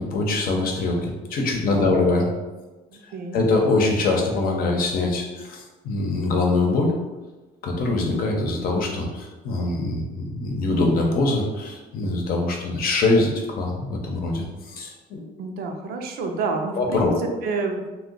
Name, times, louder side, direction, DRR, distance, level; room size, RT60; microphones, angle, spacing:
voice 1, 0.0-2.3 3.3-6.9 7.6-15.2 16.8-17.1, left 2 dB, 60° left, 1 dB, 0.8 m, -23 dB
voice 2, 1.7-2.0 2.9-3.4 15.4-17.9, right 3 dB, 65° right, 4 dB, 0.5 m, -29 dB
2.7 x 2.3 x 3.7 m, 1.2 s
cardioid pair, 110°, 17 cm